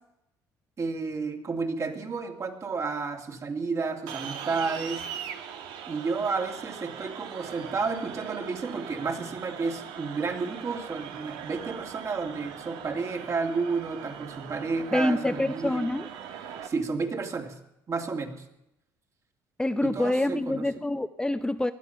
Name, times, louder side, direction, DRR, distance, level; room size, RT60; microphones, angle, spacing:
voice 1, 0.8-5.0 5.9-15.9 16.6-17.6 17.9-18.4 19.8-20.7, right 4 dB, 40° right, 4 dB, 2.8 m, -31 dB
sound 1, 4.1-16.7, right 8 dB, 80° right, 1.8 m, -41 dB
voice 2, 14.9-16.1 19.6-21.7, left 1 dB, 10° left, 9 dB, 0.7 m, -26 dB
19.5 x 12.5 x 5.9 m, 0.86 s
supercardioid pair, 85°, 8 cm